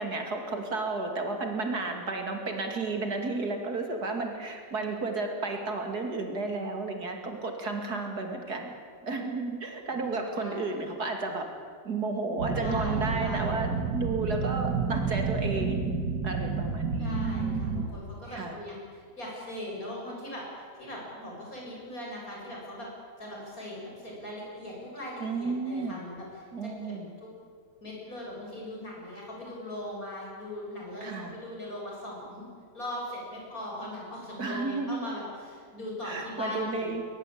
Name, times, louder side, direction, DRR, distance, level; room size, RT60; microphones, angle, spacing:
voice 1, 0.0-8.7 9.0-11.5 11.8-16.0 16.2-17.3 18.3-18.6 25.2-26.0 26.5-27.1 31.0-31.4 34.4-35.0 36.0-37.0, right 3 dB, 60° right, 4 dB, 3.0 m, -32 dB
voice 2, 9.9-10.7 12.6-13.6 17.0-22.9 23.2-27.3 27.8-32.5 32.7-36.9, left 1 dB, 55° left, -3 dB, 7.9 m, -40 dB
sound 1, 12.4-17.9, right 5 dB, 80° right, 2.3 m, -30 dB
22.0 x 21.0 x 8.7 m, 2.1 s
omnidirectional pair, 1.9 m